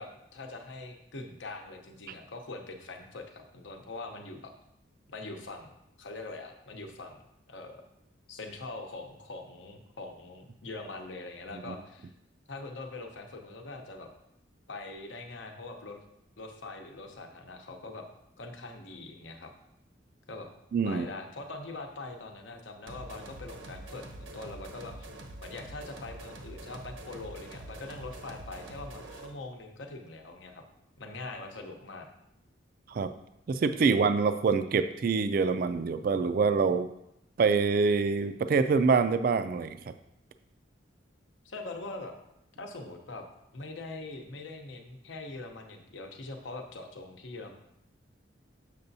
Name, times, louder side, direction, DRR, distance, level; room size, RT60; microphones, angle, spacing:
voice 1, 0.0-4.5 5.1-5.7 6.0-7.2 7.5-7.8 8.3-12.1 12.5-14.1 14.7-16.0 16.4-18.0 18.4-19.5 20.3-20.5 20.8-24.9 25.4-30.6 31.0-32.1 33.7-34.0 41.4-42.1 42.6-43.2 43.5-47.5, left 2 dB, 80° left, 4 dB, 0.9 m, -42 dB
voice 2, 20.7-21.1 32.9-33.1 33.5-36.9 37.4-39.9, right 5 dB, 50° right, 10 dB, 0.3 m, -25 dB
sound 1, 22.9-29.4, right 1 dB, 80° right, 0.9 m, -45 dB
6.8 x 6.7 x 2.7 m, 0.80 s
head